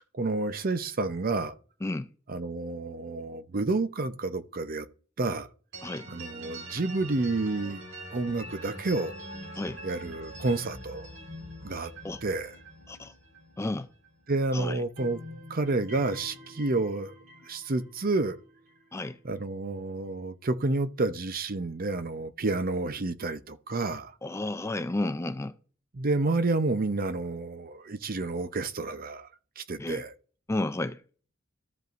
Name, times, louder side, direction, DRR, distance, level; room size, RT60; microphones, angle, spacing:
voice 1, 0.1-1.5 2.3-4.9 5.2-5.5 6.1-7.8 8.1-9.1 9.8-11.1 11.6-11.9 12.2-12.6 14.3-15.2 15.5-17.1 17.4-18.4 19.2-24.1 25.9-29.3 29.6-30.1, right 3 dB, 45° right, 0.6 m, -29 dB
sound 1, 5.7-14.5 14.7-18.9, right 1 dB, 75° right, 4.1 m, -45 dB
voice 2, 13.6-13.9 14.5-14.8 18.9-19.2 24.2-25.5 29.8-30.0 30.5-31.0, left 2 dB, 15° left, 0.4 m, -32 dB
14.0 x 5.4 x 2.5 m
head